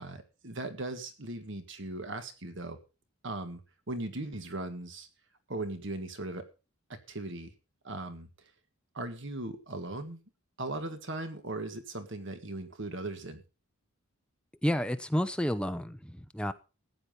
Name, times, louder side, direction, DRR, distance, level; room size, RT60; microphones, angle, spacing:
voice 1, 0.0-2.8 3.2-3.6 3.9-5.1 5.5-6.4 7.1-7.5 7.8-8.3 8.9-10.2 10.6-13.4, right 2 dB, 55° right, 8 dB, 1.7 m, -38 dB
voice 2, 14.6-16.5, equal, 5° left, 9 dB, 0.8 m, -30 dB
15.0 x 9.8 x 5.4 m, 0.32 s
head